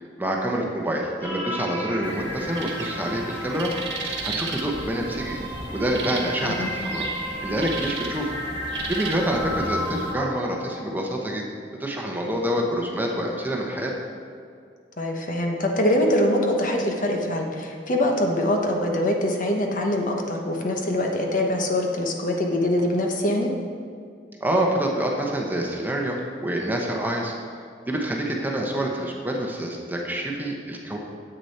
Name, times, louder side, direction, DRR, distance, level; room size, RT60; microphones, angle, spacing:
voice 1, 0.0-3.7 4.2-5.4 5.7-7.1 7.4-8.3 8.9-11.5 11.8-13.9 24.4-27.3 27.9-31.0, right 1 dB, 10° right, -1 dB, 0.9 m, -27 dB
sound 1, 1.2-11.2, equal, 15° left, 2.0 m, -34 dB
birds in forest, 2.0-10.1, right 3 dB, 70° right, 1.3 m, -35 dB
voice 2, 15.0-23.5, left 1 dB, 50° left, 2 dB, 1.1 m, -23 dB
9.9 x 7.9 x 4.3 m, 2.3 s
head